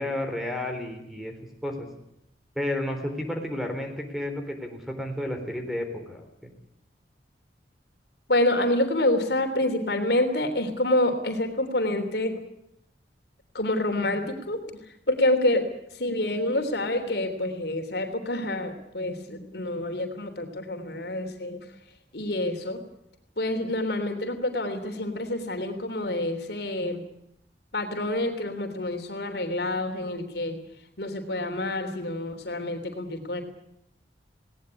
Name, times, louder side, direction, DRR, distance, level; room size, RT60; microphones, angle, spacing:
voice 1, 0.0-1.3 1.6-1.9 2.6-6.5, left 1 dB, ahead, 4 dB, 3.7 m, -32 dB
voice 2, 8.3-12.4 13.5-14.6 15.1-15.7 16.0-21.6 22.1-22.8 23.4-27.0 27.7-30.6 31.0-33.4, left 1 dB, 65° left, 6 dB, 3.4 m, -27 dB
19.5 x 18.5 x 9.8 m, 0.79 s
head